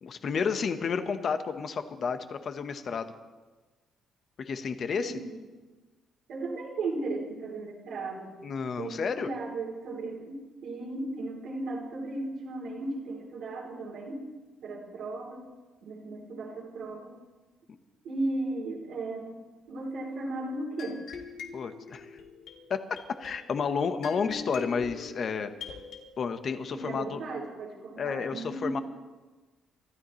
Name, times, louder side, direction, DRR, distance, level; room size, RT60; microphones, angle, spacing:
voice 1, 0.0-3.1 4.4-5.1 8.4-9.3 21.5-22.1 22.7-22.8 23.2-25.5 26.2-27.2 28.0-28.8, left 5 dB, 55° left, 9 dB, 1.1 m, -31 dB
voice 2, 5.0-5.4 6.3-8.3 8.8-14.2 14.6-15.5 15.8-17.2 18.0-19.4 19.7-21.0 26.7-28.8, right 2 dB, 80° right, -5 dB, 3.3 m, -36 dB
sound 1, 20.8-26.0, left 5 dB, 80° left, 1.9 m, -43 dB
25.5 x 13.0 x 3.2 m, 1.3 s
cardioid pair, 90°, 0 cm